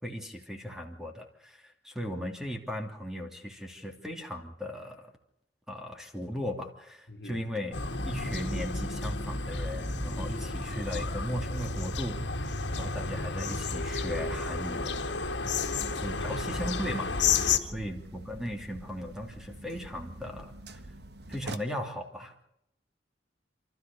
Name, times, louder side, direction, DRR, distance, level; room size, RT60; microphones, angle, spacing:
voice 1, 0.0-5.1 5.7-7.7 8.0-14.9 16.0-17.1 17.6-20.8 21.3-22.3, equal, 5° right, 2.9 m, -37 dB
voice 2, 7.1-7.5 15.4-16.4 17.8-17.9, left 1 dB, 60° left, 2.1 m, -47 dB
sound 1, 7.7-17.6, left 4 dB, 75° left, 1.8 m, -31 dB
sound 2, 15.7-21.5, right 2 dB, 65° right, 1.4 m, -45 dB
28.5 x 13.5 x 6.8 m
head